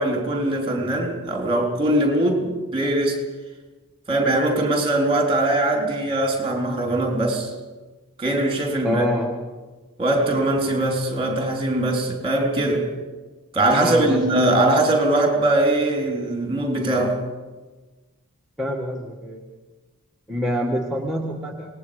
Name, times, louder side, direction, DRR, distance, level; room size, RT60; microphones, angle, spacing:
voice 1, 0.0-3.2 4.1-7.5 8.2-9.0 10.0-12.9 13.5-17.3, right 1 dB, 25° right, 3.7 m, -21 dB
voice 2, 8.8-9.4 13.8-14.3 18.6-19.4 20.3-21.7, equal, ahead, 1.7 m, -26 dB
26.0 x 19.5 x 5.1 m
head